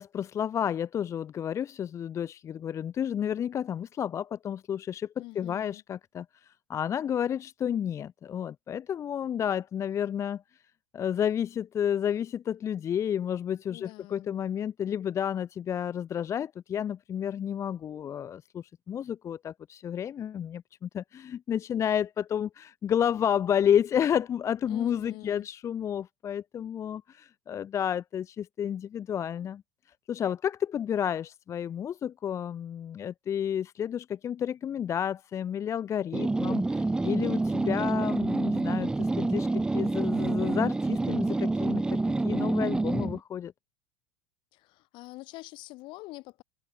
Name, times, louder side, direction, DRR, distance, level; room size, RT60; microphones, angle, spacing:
voice 1, 0.0-10.4 10.9-29.6 30.1-43.5, left 9 dB, 30° left, 0.6 m, -31 dB
voice 2, 5.2-5.8 13.7-14.4 24.7-25.5 44.5-46.4, left 21 dB, 50° left, 2.0 m, -45 dB
sound 1, 36.1-43.2, right 2 dB, 10° right, 0.4 m, -27 dB
hypercardioid pair, 85°, 10 cm